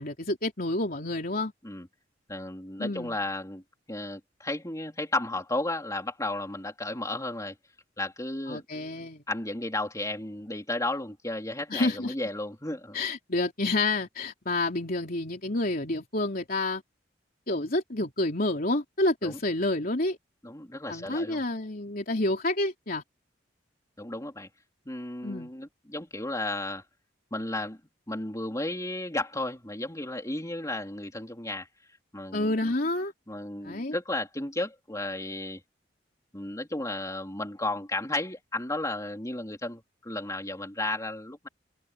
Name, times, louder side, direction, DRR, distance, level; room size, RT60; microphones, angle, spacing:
voice 1, 0.0-1.5 2.8-3.2 8.5-9.2 11.7-12.1 12.9-16.8 17.5-20.2 20.9-23.0 25.2-25.5 32.3-33.1 33.6-34.0, left 2 dB, 50° left, 3.6 m, -29 dB
voice 2, 2.3-3.6 3.9-7.5 8.0-8.6 9.3-13.0 19.2-19.4 20.4-21.4 24.0-24.5 24.8-26.8 27.3-27.8 28.1-31.7 32.1-32.7 33.3-35.6 36.3-41.5, left 2 dB, 20° left, 3.4 m, -33 dB
head